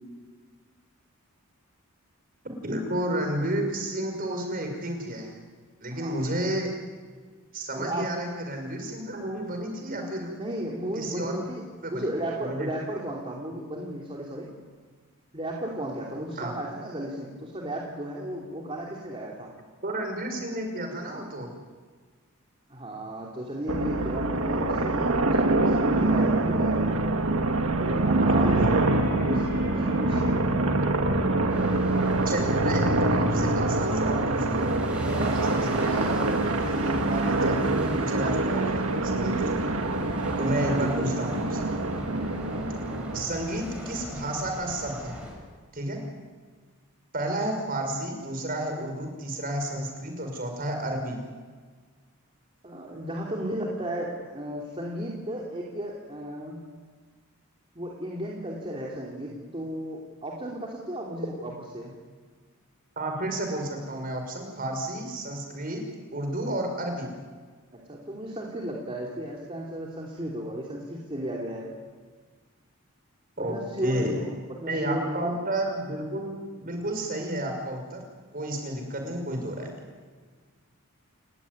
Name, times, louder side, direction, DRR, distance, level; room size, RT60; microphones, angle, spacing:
voice 1, 2.6-5.3 5.8-6.7 7.5-10.3 10.9-11.4 11.8-12.1 12.4-12.7 16.4-16.5 19.8-21.5 28.2-28.9 32.3-39.6 40.4-41.7 43.1-45.2 45.7-46.0 47.1-51.2 63.0-65.8 66.1-67.1 73.4-73.6 73.8-74.2 74.7-78.0 78.3-79.7, right 1 dB, 40° right, 4 dB, 5.7 m, -31 dB
voice 2, 5.9-6.2 7.7-8.1 10.3-14.5 15.3-19.5 22.7-27.0 27.8-28.7 28.9-30.3 40.8-41.1 52.6-56.6 57.7-62.0 67.7-71.7 73.4-75.4, right 1 dB, 25° right, -3 dB, 3.2 m, -34 dB
sound 1, 23.7-43.2, right 2 dB, 70° right, 1.8 m, -25 dB
sound 2, 28.4-34.1, left 1 dB, 60° left, 5.7 m, -43 dB
sound 3, 31.5-45.3, equal, 5° right, 6.1 m, -41 dB
29.5 x 15.5 x 9.7 m, 1.5 s
head